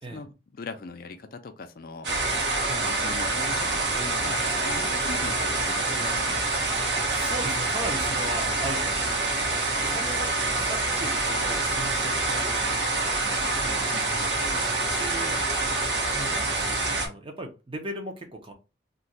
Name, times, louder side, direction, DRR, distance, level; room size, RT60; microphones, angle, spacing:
voice 1, 0.1-2.1 2.8-6.4 13.5-14.7, left 3 dB, 55° left, 0.4 m, -41 dB
sound 1, 2.0-17.1, right 2 dB, 70° right, 1.0 m, -26 dB
voice 2, 7.1-9.5 9.8-13.9 15.0-15.4 16.1-18.5, right 1 dB, 30° right, 0.6 m, -38 dB
2.5 x 2.3 x 4.0 m
head